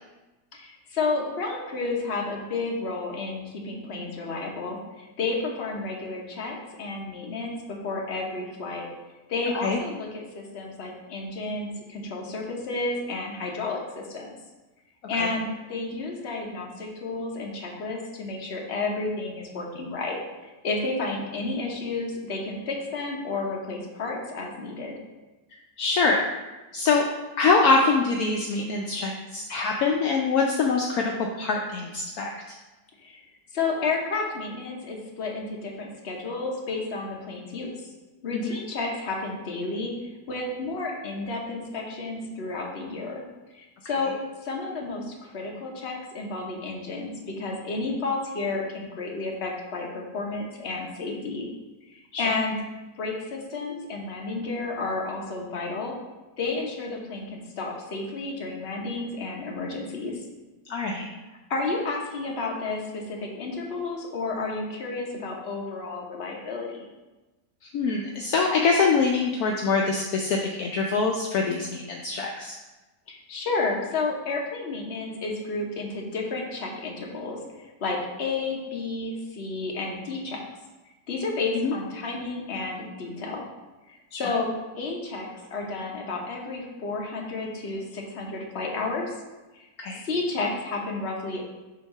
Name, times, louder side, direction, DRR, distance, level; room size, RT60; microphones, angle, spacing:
voice 1, 0.5-8.9 9.3-14.3 15.1-20.2 20.4-24.9 33.0-33.2 33.5-37.7 38.2-39.9 40.3-43.2 43.5-44.1 44.4-51.5 52.2-52.6 53.0-55.9 56.4-60.2 61.5-66.8 73.1-80.4 81.1-83.4 83.9-84.5 84.8-89.1 89.5-89.6 90.0-91.4, left 3 dB, 45° left, -1 dB, 1.1 m, -31 dB
voice 2, 25.8-26.3 26.7-27.1 27.4-32.3 38.3-38.6 52.1-52.2 60.7-61.1 67.6-72.5 81.5-81.7 84.1-84.2 89.8-90.0, left 4 dB, 70° left, 0 dB, 1.0 m, -24 dB
7.5 x 2.9 x 5.4 m, 1.1 s
omnidirectional pair, 1.8 m